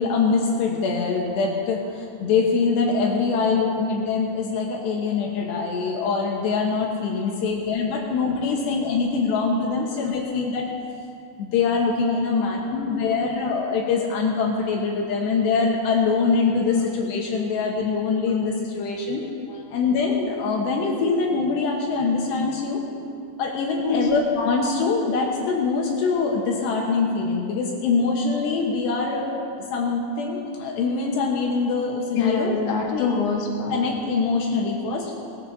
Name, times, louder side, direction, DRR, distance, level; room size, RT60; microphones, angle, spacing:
voice 1, 0.0-1.8 2.2-10.7 11.4-19.2 19.7-22.8 23.4-29.4 29.7-32.5 32.9-33.1 33.7-35.1, left 4 dB, 80° left, -1 dB, 3.4 m, -23 dB
voice 2, 3.0-3.4 7.1-7.3 8.5-10.1 12.2-13.2 15.1-15.2 16.2-16.3 16.7-16.8 18.3-18.4 18.8-19.1 19.5-19.6 23.8-24.1 31.6-31.8 32.1-33.8, left 4 dB, 60° left, -1 dB, 3.3 m, -29 dB
19.0 x 14.5 x 4.2 m, 2.5 s
omnidirectional pair, 5.0 m